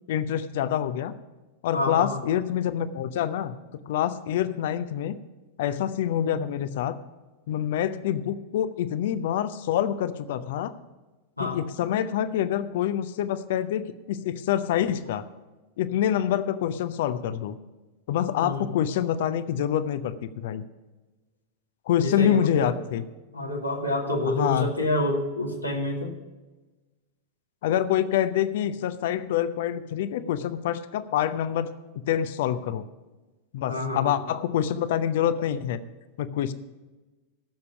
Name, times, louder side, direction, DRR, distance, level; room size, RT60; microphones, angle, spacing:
voice 1, 0.1-1.1 1.6-3.6 3.9-5.2 5.6-7.0 7.5-10.7 11.4-15.2 15.8-17.6 18.1-20.6 21.9-23.1 24.3-24.7 27.6-32.9 33.5-35.8 36.2-36.5, left 10 dB, 55° left, 14 dB, 0.7 m, -26 dB
voice 2, 1.7-2.2 11.4-11.6 18.4-18.6 22.0-22.7 23.3-26.1 30.2-30.3 33.7-34.2, left 1 dB, 85° left, 0 dB, 2.1 m, -28 dB
16.0 x 6.9 x 5.8 m, 1.2 s
figure-of-eight pair, 90°, 0 cm